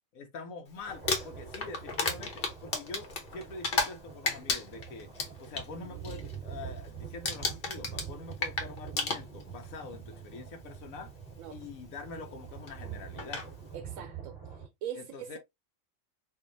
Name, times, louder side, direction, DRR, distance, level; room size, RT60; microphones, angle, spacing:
voice 1, 0.2-5.1 5.4-11.1 11.5-13.5 14.9-15.4, left 3 dB, 80° left, 1.1 m, -45 dB
Crumpling crinkling, 0.9-4.0 4.2-5.7 6.0-6.3 6.6-6.9 7.2-9.6 10.6-10.7 12.7-12.8 13.2-13.5, left 4 dB, 45° left, 1.0 m, -32 dB
sound 1, 0.9-14.7, right 7 dB, 30° right, 2.8 m, -45 dB
voice 2, 13.7-15.4, right 9 dB, 90° right, 1.0 m, -42 dB
4.6 x 2.5 x 2.5 m
omnidirectional pair, 1.4 m